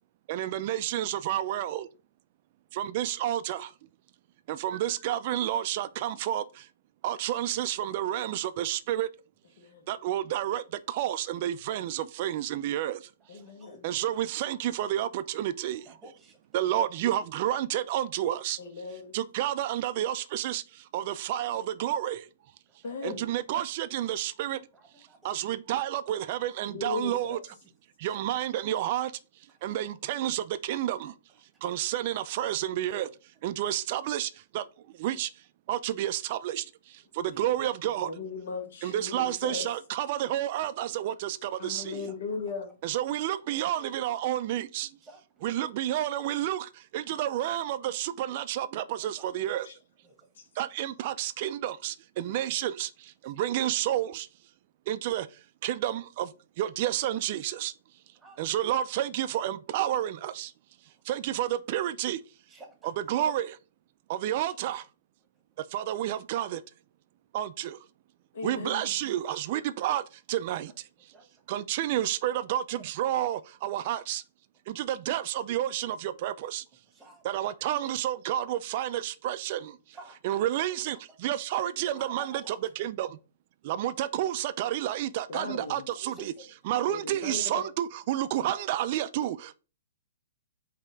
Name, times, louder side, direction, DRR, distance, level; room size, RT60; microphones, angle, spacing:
voice 1, 0.3-1.9 2.7-3.7 4.5-6.7 7.0-9.1 9.9-13.1 13.8-16.0 16.5-18.6 19.1-22.3 23.0-24.6 25.2-27.4 28.0-29.1 29.6-31.2 31.6-33.1 33.4-34.7 34.9-35.3 35.7-38.1 38.8-42.1 42.8-44.9 45.4-49.7 50.6-54.3 54.9-55.3 55.6-57.7 58.4-60.5 61.1-62.2 62.8-63.6 64.1-64.8 65.7-66.6 67.3-67.8 68.4-70.7 71.5-74.2 74.7-76.6 77.2-79.8 80.2-81.0 81.2-83.2 83.6-86.3 86.7-89.6, right 12 dB, 45° right, 0.4 m, -30 dB
voice 2, 9.6-9.9 13.3-13.9 18.6-19.2 22.8-23.3 26.7-27.4 38.0-39.7 41.6-42.7 49.6-49.7 68.3-69.0 85.3-85.9 86.9-87.6, left 4 dB, 65° left, 1.4 m, -37 dB
voice 3, 13.2-13.9 15.8-16.4 18.9-19.0 22.7-23.1 24.7-25.5 28.0-28.5 29.5-29.6 37.3-37.7 41.4-41.5 41.8-42.1 45.0-45.2 48.7-49.3 50.0-50.2 52.2-52.3 58.2-58.4 61.1-61.2 62.5-62.9 66.4-66.5 71.1-71.4 72.7-72.8 76.9-77.2 77.8-77.9 79.9-80.4 80.7-80.8 81.9-82.6 85.6-86.2 88.5-88.6, right 3 dB, 10° right, 1.2 m, -52 dB
5.1 x 2.8 x 3.4 m
hypercardioid pair, 135°, 0 cm